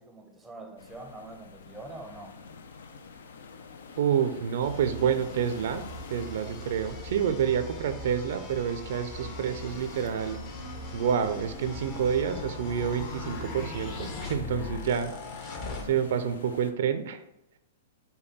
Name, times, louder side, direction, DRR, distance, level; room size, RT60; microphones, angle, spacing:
voice 1, 0.0-2.4, right 2 dB, 5° right, 4 dB, 0.6 m, -44 dB
sound 1, 0.8-16.7, left 5 dB, 80° left, 0.4 m, -47 dB
sound 2, 3.9-12.6, left 2 dB, 55° left, 1.2 m, -53 dB
voice 2, 4.0-10.4 10.9-15.1 15.8-17.2, right 8 dB, 65° right, 9 dB, 0.4 m, -28 dB
sound 3, 4.6-15.8, left 2 dB, 35° left, 0.8 m, -40 dB
5.2 x 2.2 x 4.1 m, 0.86 s
hypercardioid pair, 135°, 0 cm